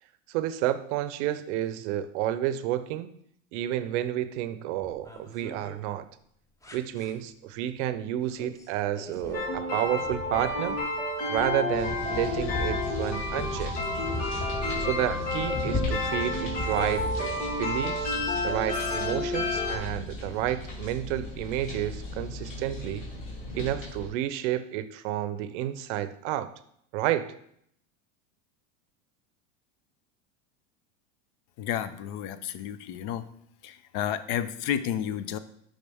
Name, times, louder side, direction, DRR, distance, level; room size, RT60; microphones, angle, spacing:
voice 1, 0.3-3.1 3.5-6.1 6.7-10.8 11.3-13.7 14.8-18.2 18.4-23.1 23.5-26.5 26.9-27.3, right 12 dB, 65° right, 13 dB, 0.6 m, -30 dB
sound 1, 4.8-5.8 6.6-7.1 8.4-8.6 9.0-17.8 18.7-18.9, left 2 dB, 10° left, 0.6 m, -37 dB
sound 2, 9.3-19.8, left 2 dB, 70° left, 2.8 m, -31 dB
sound 3, 11.7-24.1, left 2 dB, 30° left, 2.7 m, -39 dB
voice 2, 31.6-33.3 33.6-35.4, left 10 dB, 50° left, 13 dB, 0.5 m, -31 dB
8.6 x 3.8 x 3.5 m, 0.69 s
supercardioid pair, 125°, 37 cm